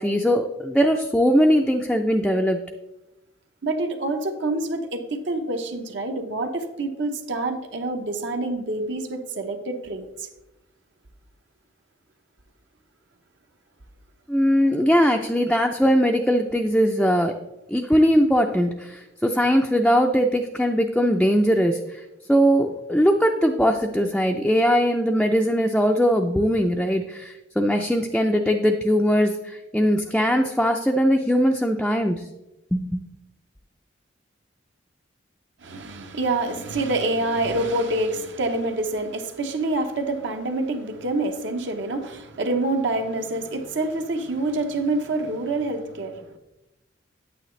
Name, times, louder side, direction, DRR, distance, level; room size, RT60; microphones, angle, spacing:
voice 1, 0.0-2.6 14.3-17.3 17.7-22.0 22.3-32.2 32.7-33.0, equal, 5° left, 0.4 m, -20 dB
voice 2, 3.6-10.3 35.6-46.2, right 2 dB, 65° right, 0.9 m, -27 dB
9.2 x 8.6 x 3.2 m
head